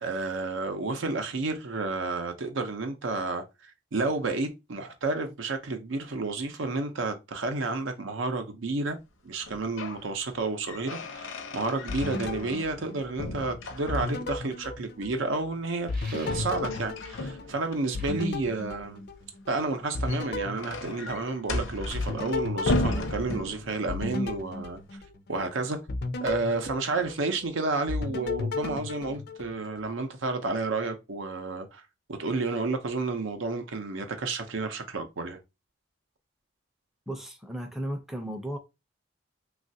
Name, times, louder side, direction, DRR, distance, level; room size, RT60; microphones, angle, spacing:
voice 1, 0.0-9.0 9.2-19.0 19.5-24.8 25.3-25.8 26.2-31.8 32.1-35.4, right 3 dB, 80° right, 0.6 m, -31 dB
sound 1, 9.4-10.0 10.4-12.9 13.2-14.4 16.2-17.8 19.8-24.0, left 1 dB, 90° left, 0.6 m, -34 dB
sound 2, 11.9-13.5 13.9-15.5 15.9-19.5 19.9-21.5 21.9-25.4 25.9-27.5 27.9-29.8, left 3 dB, 55° left, 0.4 m, -35 dB
sound 3, 15.9-16.9 17.6-19.3, right 2 dB, 45° right, 0.8 m, -50 dB
voice 2, 37.1-38.6, right 1 dB, ahead, 0.5 m, -35 dB
3.1 x 2.4 x 2.7 m
head